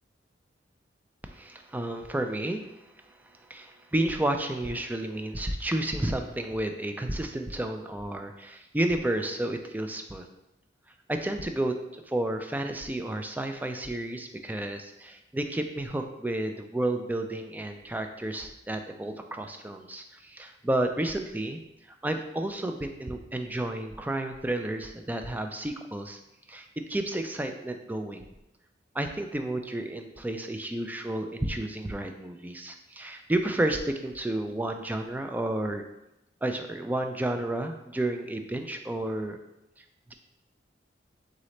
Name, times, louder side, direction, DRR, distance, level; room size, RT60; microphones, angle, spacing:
voice 1, 1.2-10.3 11.1-21.6 22.0-26.2 26.5-28.3 28.9-35.8 36.4-39.4, right 1 dB, 10° right, 6 dB, 0.3 m, -31 dB
4.0 x 3.7 x 3.2 m, 0.91 s
head